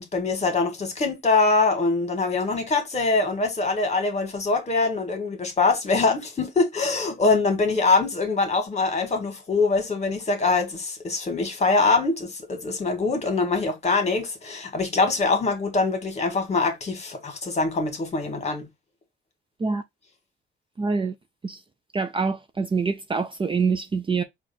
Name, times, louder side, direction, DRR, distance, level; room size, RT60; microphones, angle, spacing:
voice 1, 0.0-18.7, left 3 dB, 35° left, 1.8 m, -23 dB
voice 2, 20.8-21.1 21.4-21.6 21.9-24.2, right 4 dB, 25° right, 0.6 m, -25 dB
4.4 x 2.5 x 4.2 m
cardioid pair, 90°, 20 cm